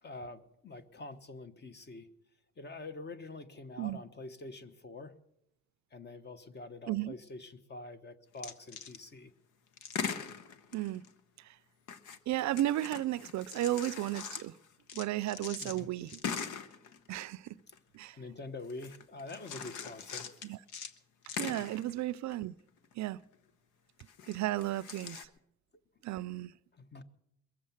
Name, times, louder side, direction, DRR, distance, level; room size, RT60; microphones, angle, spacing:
voice 1, 0.0-2.1 2.6-5.1 5.9-9.3 15.6-15.9 17.7-17.8 18.1-20.3 21.6-21.7 26.7-27.0, left 3 dB, 35° left, 1.1 m, -46 dB
sound 1, 8.4-9.0 9.8-11.1 11.9-17.5 17.7-17.8 18.7-21.0 21.2-22.4 22.7-23.2 24.0-25.3, left 6 dB, 85° left, 1.0 m, -42 dB
voice 2, 10.7-11.0 12.3-14.5 14.9-16.2 17.1-17.5 17.9-18.2 20.4-20.6 21.4-22.5 23.0-23.2 24.3-25.2 26.0-26.5, right 15 dB, 70° right, 0.5 m, -34 dB
22.0 x 7.4 x 7.2 m
cardioid pair, 90°, 30 cm